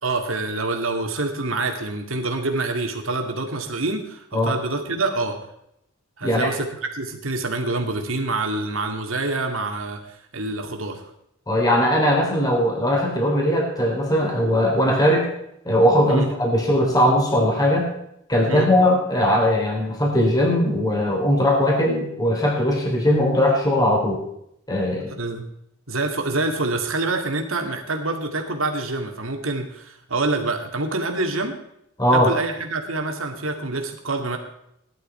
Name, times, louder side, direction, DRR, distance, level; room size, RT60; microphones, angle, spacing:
voice 1, 0.0-5.4 6.2-11.0 16.1-16.3 18.5-18.7 25.1-25.4 25.9-31.6 32.1-34.4, right 2 dB, 75° right, 4 dB, 2.3 m, -26 dB
voice 2, 11.5-15.3 15.7-17.9 18.3-24.2 24.7-25.1 32.0-32.3, left 1 dB, 20° left, -1 dB, 3.6 m, -19 dB
17.5 x 11.5 x 4.4 m, 0.76 s
head